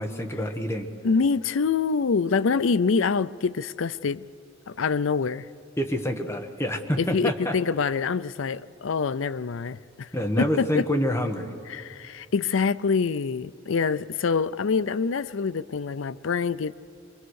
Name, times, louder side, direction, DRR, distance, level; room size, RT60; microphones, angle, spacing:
voice 1, 0.0-0.9 5.8-7.5 10.1-11.5, equal, 15° left, 1.3 m, -27 dB
voice 2, 1.0-4.2 4.7-5.5 7.0-10.1 10.4-10.9 11.7-16.7, left 5 dB, 75° left, 0.5 m, -25 dB
24.5 x 22.0 x 6.5 m
head